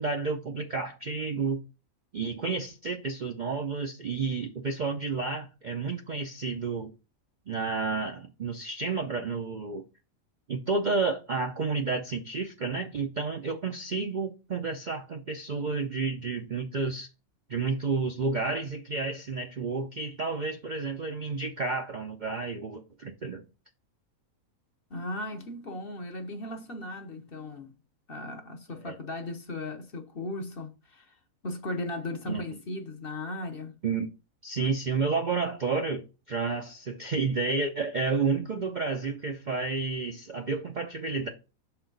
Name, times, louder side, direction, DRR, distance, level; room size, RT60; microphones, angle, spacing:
voice 1, 0.0-1.6 2.1-6.9 7.5-9.9 10.5-17.1 17.5-23.4 28.8-29.0 32.3-32.4 33.8-34.1 34.4-41.3, right 4 dB, 50° right, 0.5 m, -31 dB
voice 2, 24.9-27.7 28.1-31.1 31.4-33.7, left 2 dB, 45° left, 1.0 m, -37 dB
6.6 x 4.5 x 3.9 m
omnidirectional pair, 1.5 m